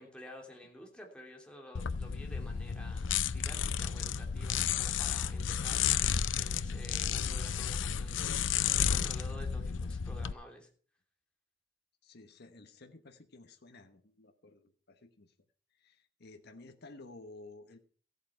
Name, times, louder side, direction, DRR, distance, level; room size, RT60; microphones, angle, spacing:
voice 1, 0.0-6.0 6.4-8.3 8.7-10.7, left 1 dB, 5° left, 1 dB, 2.9 m, -51 dB
sound 1, 1.8-10.3, left 8 dB, 75° left, 0.5 m, -32 dB
voice 2, 12.0-15.3 15.8-17.8, left 2 dB, 60° left, 6 dB, 1.2 m, -53 dB
14.5 x 8.6 x 5.8 m, 0.42 s
head